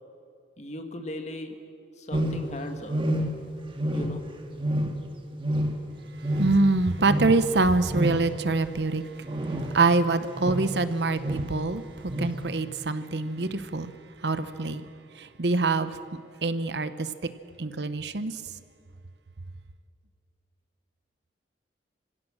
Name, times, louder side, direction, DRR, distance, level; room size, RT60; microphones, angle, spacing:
voice 1, 0.6-1.6 2.0-3.1 3.9-4.2, left 1 dB, 40° left, 1.9 m, -37 dB
sound 1, 2.1-2.6 2.9-3.5 3.8-4.3 4.6-5.1 5.4-5.9 6.2-6.7 7.0-7.4 7.9-8.3 9.2-9.8 10.4-10.7 11.2-11.5 12.1-12.4, right 1 dB, 30° right, 1.6 m, -28 dB
voice 2, 6.3-9.0 9.7-11.8 12.2-13.9 14.2-14.9 15.2-16.0 16.4-17.1 17.6-18.4, right 3 dB, 70° right, 0.9 m, -25 dB
26.0 x 16.5 x 6.4 m
head